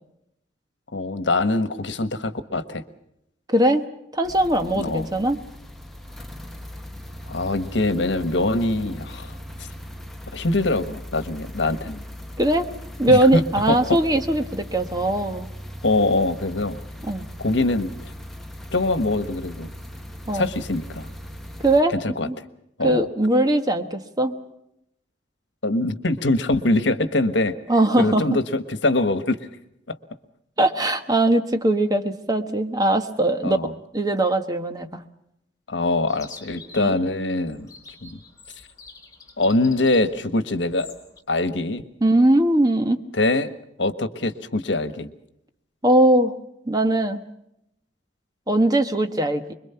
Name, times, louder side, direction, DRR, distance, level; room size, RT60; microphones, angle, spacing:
voice 1, 0.9-2.8 4.7-5.1 7.3-9.3 9.6-9.7 10.3-12.0 13.1-13.4 13.7-14.0 15.8-16.8 17.4-18.1 18.7-19.7 20.3-21.1 22.0-22.3 22.8-23.1 25.6-27.5 28.0-29.4 29.9-30.0 33.4-33.7 35.7-37.7 38.0-38.2 39.4-40.9 41.3-41.8 43.1-43.5 43.8-45.1, left 2 dB, 80° left, 12 dB, 1.4 m, -23 dB
voice 2, 3.5-3.9 4.1-5.4 12.4-12.7 13.0-15.5 17.0-17.2 20.3-20.5 21.6-21.9 22.3-22.4 22.8-24.4 27.7-28.4 30.6-33.7 33.9-35.0 36.8-36.9 42.0-43.0 45.8-46.3 46.7-47.2 48.5-49.5, right 1 dB, 20° right, 7 dB, 1.3 m, -20 dB
sound 1, 4.2-21.8, equal, ahead, 1.3 m, -38 dB
Chirp tweet, 36.1-41.2, left 4 dB, 20° left, 4.0 m, -47 dB
26.0 x 22.5 x 5.7 m, 0.80 s
head